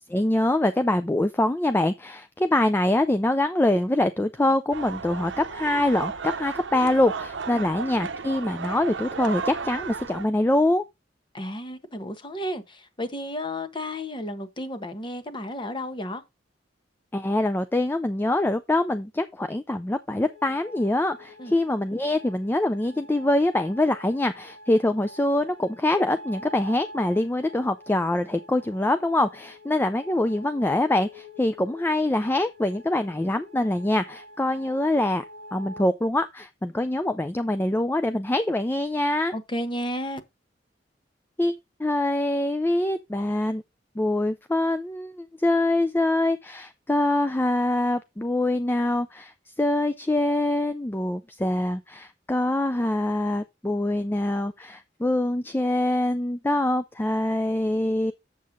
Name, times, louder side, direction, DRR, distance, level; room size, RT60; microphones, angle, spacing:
voice 1, 0.1-10.8 17.1-35.2 35.5-39.3 41.4-41.5 41.8-43.6 44.0-49.3 49.6-58.1, left 1 dB, 10° left, 0.4 m, -24 dB
sound 1, 4.7-10.3, right 5 dB, 80° right, 0.7 m, -34 dB
voice 2, 11.3-16.2 21.4-21.5 39.3-40.2, left 1 dB, 25° left, 1.2 m, -33 dB
sound 2, 20.1-35.9, left 1 dB, 65° left, 3.5 m, -46 dB
7.5 x 7.4 x 3.7 m
head